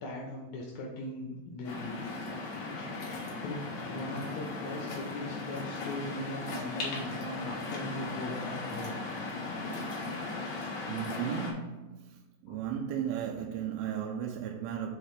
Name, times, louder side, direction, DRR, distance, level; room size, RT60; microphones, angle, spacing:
voice 1, 0.0-2.0 2.3-9.4 12.5-12.6, left 1 dB, 75° left, 2.7 m, -40 dB
Waves surf, 1.6-11.5, left 3 dB, 55° left, 2.4 m, -37 dB
voice 2, 10.5-15.0, right 8 dB, 80° right, 2.3 m, -36 dB
7.8 x 4.4 x 3.3 m
omnidirectional pair, 4.6 m